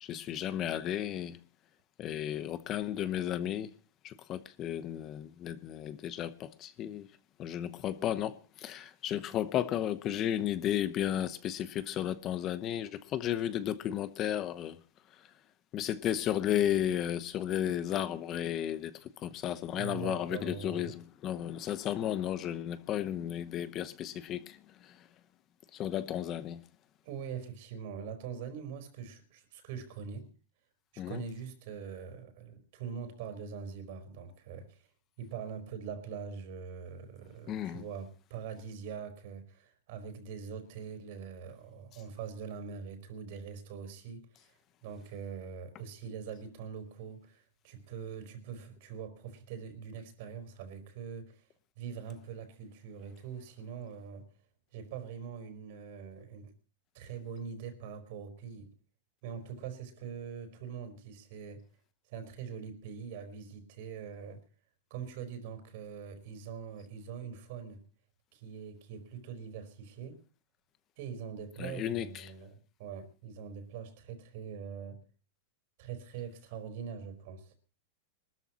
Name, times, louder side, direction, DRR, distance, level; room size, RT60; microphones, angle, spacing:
voice 1, 0.0-1.4 2.0-3.7 4.0-7.1 7.4-14.8 15.2-15.3 15.7-25.0 25.7-26.6 31.0-31.2 37.5-37.8 71.6-72.3, left 11 dB, 30° left, 0.9 m, -34 dB
voice 2, 19.8-20.9 27.0-30.3 30.9-34.9 35.2-44.6 44.8-51.4 51.8-54.3 54.7-56.5 56.9-58.7 59.2-61.6 62.1-64.4 64.9-67.8 68.3-70.2 71.0-75.0 75.8-77.5, right 7 dB, 55° right, 4.3 m, -43 dB
24.0 x 13.5 x 3.0 m
supercardioid pair, 150°, 0 cm